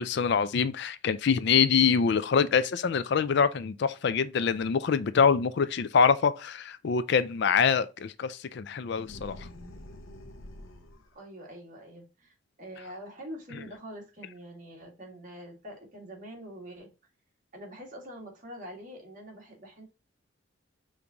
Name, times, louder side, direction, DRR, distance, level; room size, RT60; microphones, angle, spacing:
voice 1, 0.0-9.5, left 6 dB, 60° left, 0.4 m, -25 dB
sound 1, 9.0-11.2, left 1 dB, 90° left, 0.8 m, -46 dB
voice 2, 11.1-16.9 17.5-19.9, equal, 40° right, 1.9 m, -45 dB
5.2 x 3.6 x 2.8 m
head